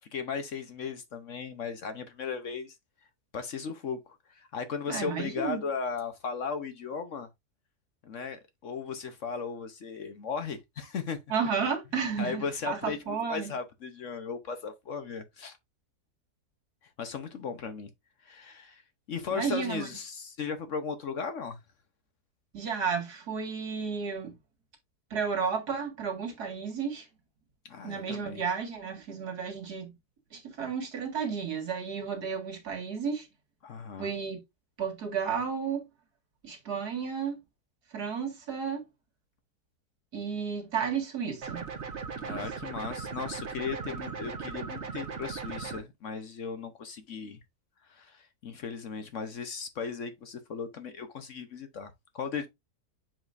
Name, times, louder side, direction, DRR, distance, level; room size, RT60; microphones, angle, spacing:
voice 1, 0.1-2.7 3.3-7.3 8.0-11.2 12.2-15.6 17.0-17.9 18.2-18.8 19.1-21.6 27.7-28.4 33.6-34.1 42.2-47.4 47.9-52.5, left 5 dB, 55° left, 1.1 m, -36 dB
voice 2, 4.9-5.6 11.3-13.5 19.3-19.9 22.5-24.3 25.1-27.1 27.8-29.9 30.3-33.3 34.0-34.4 34.8-35.9 36.4-37.4 37.9-38.8 40.1-41.6 42.3-42.4, right 6 dB, 70° right, 2.5 m, -32 dB
sound 1, 41.4-45.8, right 5 dB, 45° right, 1.3 m, -38 dB
7.2 x 5.1 x 2.5 m
omnidirectional pair, 1.7 m